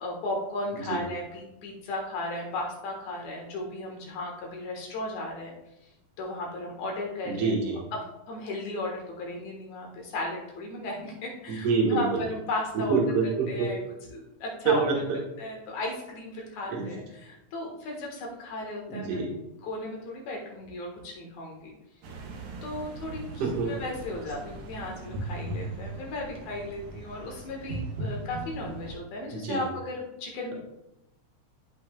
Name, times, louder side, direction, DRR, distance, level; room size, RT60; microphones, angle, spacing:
voice 1, 0.0-5.5 6.2-7.5 7.9-8.0 8.3-13.0 13.5-13.8 14.1-14.9 15.4-19.2 19.6-21.7 22.6-30.5, left 2 dB, 80° left, 0 dB, 2.8 m, -35 dB
voice 2, 7.3-7.8 11.5-12.2 12.7-13.7 14.7-15.0 16.7-16.9 18.9-19.3 23.4-23.7 29.3-29.7, right 4 dB, 60° right, -1 dB, 2.3 m, -26 dB
sound 1, 22.0-29.0, right 2 dB, 80° right, 2.4 m, -38 dB
12.5 x 5.6 x 2.3 m, 0.88 s
omnidirectional pair, 3.3 m